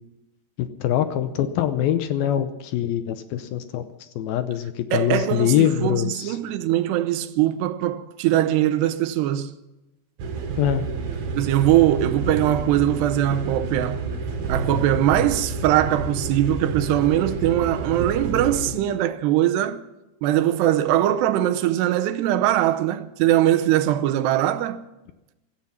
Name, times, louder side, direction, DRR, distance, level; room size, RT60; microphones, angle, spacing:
voice 1, 0.6-3.9 4.2-6.4 10.6-10.8, left 11 dB, 75° left, 2.4 m, -23 dB
voice 2, 4.9-9.6 11.3-14.1 14.5-19.8 20.2-24.8, right 12 dB, 85° right, 2.9 m, -21 dB
sound 1, 10.2-18.7, right 4 dB, 65° right, 3.9 m, -29 dB
16.5 x 13.5 x 5.7 m
omnidirectional pair, 4.8 m